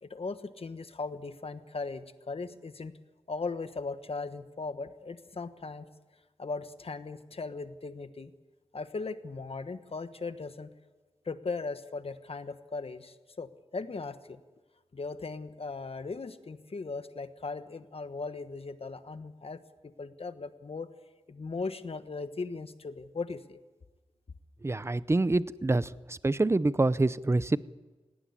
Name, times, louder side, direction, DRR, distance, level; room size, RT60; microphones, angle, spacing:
voice 1, 0.0-3.0 3.3-5.8 6.4-8.3 8.7-10.7 11.2-14.4 14.9-20.9 21.3-23.6, left 4 dB, 60° left, 10 dB, 1.3 m, -38 dB
voice 2, 24.6-27.6, right 2 dB, 25° right, 17 dB, 0.6 m, -26 dB
18.5 x 17.5 x 9.8 m, 1.3 s
wide cardioid pair, 75°, 11 cm